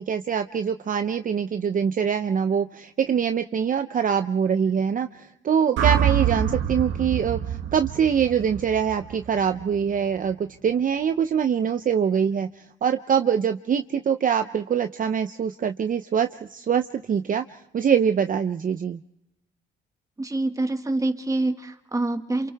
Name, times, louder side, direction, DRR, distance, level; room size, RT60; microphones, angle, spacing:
voice 1, 0.0-12.5 12.8-19.0, right 7 dB, 45° right, 8 dB, 0.7 m, -24 dB
sound 1, 5.8-10.0, right 10 dB, 75° right, 1.5 m, -26 dB
voice 2, 20.2-22.5, right 2 dB, 15° right, 6 dB, 1.9 m, -26 dB
28.5 x 28.0 x 3.5 m, 0.85 s
cardioid pair, 90°, 20 cm